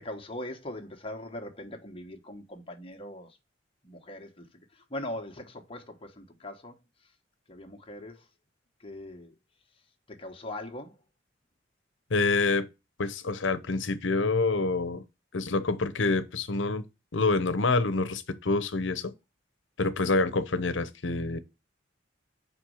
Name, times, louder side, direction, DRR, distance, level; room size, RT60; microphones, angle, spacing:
voice 1, 0.0-3.4 3.8-4.5 4.7-6.8 7.5-8.3 8.8-9.3 10.1-11.0, left 1 dB, 30° left, 1.2 m, -40 dB
voice 2, 12.1-12.7 13.0-15.0 15.3-16.8 17.1-19.1 19.8-21.4, left 3 dB, 80° left, 0.8 m, -27 dB
5.3 x 4.4 x 6.2 m
head